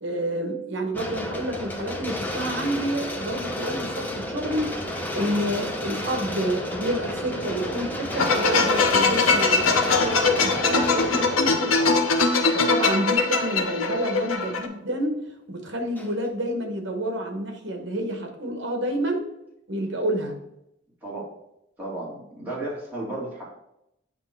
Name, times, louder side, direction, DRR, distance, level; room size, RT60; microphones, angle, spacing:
voice 1, 0.0-12.0 12.5-15.2 15.5-19.2 19.7-20.4, right 1 dB, 65° right, 4 dB, 1.1 m, -29 dB
sound 1, 0.9-13.0 13.7-13.8 16.0-16.3, left 1 dB, 10° left, 0.6 m, -32 dB
sound 2, 8.1-14.7, left 4 dB, 90° left, 0.7 m, -22 dB
voice 2, 21.8-23.4, right 2 dB, 10° right, -7 dB, 2.0 m, -33 dB
8.1 x 2.9 x 4.4 m, 0.81 s
head